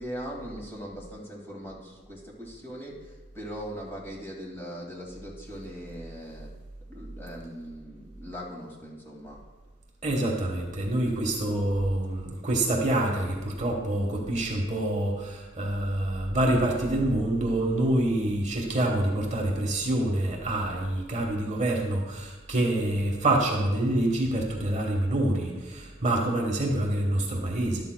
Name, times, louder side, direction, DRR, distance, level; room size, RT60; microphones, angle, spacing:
voice 1, 0.0-6.5 6.9-9.4, equal, 15° left, -3 dB, 2.1 m, -40 dB
voice 2, 10.0-27.8, right 1 dB, 40° right, 0 dB, 1.3 m, -26 dB
12.0 x 12.0 x 2.2 m, 1.3 s
head